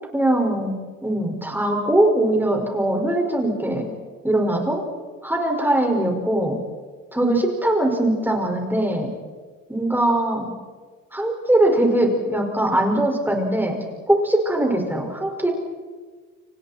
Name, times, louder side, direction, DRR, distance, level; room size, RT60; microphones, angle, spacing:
voice 1, 0.1-0.7 1.0-3.9 4.2-4.8 5.2-6.6 7.1-9.1 9.7-10.5 11.1-13.8 14.1-15.5, right 1 dB, 5° right, 1 dB, 5.6 m, -21 dB
29.5 x 27.0 x 4.5 m, 1.5 s
cardioid pair, 90°, 30 cm